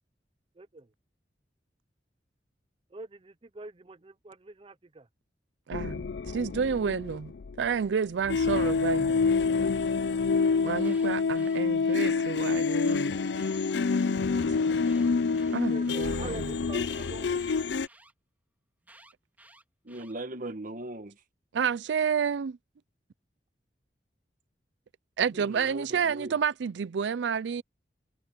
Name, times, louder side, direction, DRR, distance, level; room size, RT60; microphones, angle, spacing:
voice 1, 0.6-0.9 2.9-5.1 15.7-17.4, right 2 dB, 30° right, 0.6 m, -44 dB
sound 1, 5.7-7.7 8.2-17.9, left 4 dB, 75° left, 0.5 m, -27 dB
voice 2, 5.7-6.0 6.3-7.3 7.6-9.1 10.6-13.1 15.5-16.4 21.5-22.6 25.2-27.6, right 6 dB, 85° right, 0.4 m, -30 dB
Alarm, 10.6-12.1 12.8-14.1 14.8-16.1 16.8-18.1 18.8-20.1, right 2 dB, 10° right, 3.9 m, -56 dB
voice 3, 19.8-21.2 25.3-26.4, right 1 dB, 50° right, 1.4 m, -39 dB
head